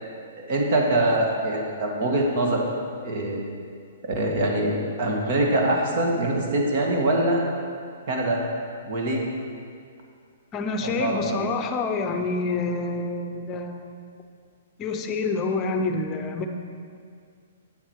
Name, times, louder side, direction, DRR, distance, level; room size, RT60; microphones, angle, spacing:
voice 1, 0.4-2.7 3.0-3.4 4.0-7.4 8.1-8.4 8.9-9.2 10.8-11.5, right 1 dB, 50° right, 0 dB, 1.8 m, -24 dB
voice 2, 10.5-14.0 14.8-16.5, left 3 dB, 25° left, 6 dB, 0.7 m, -27 dB
8.1 x 7.5 x 4.8 m, 2.2 s
hypercardioid pair, 140°, 0 cm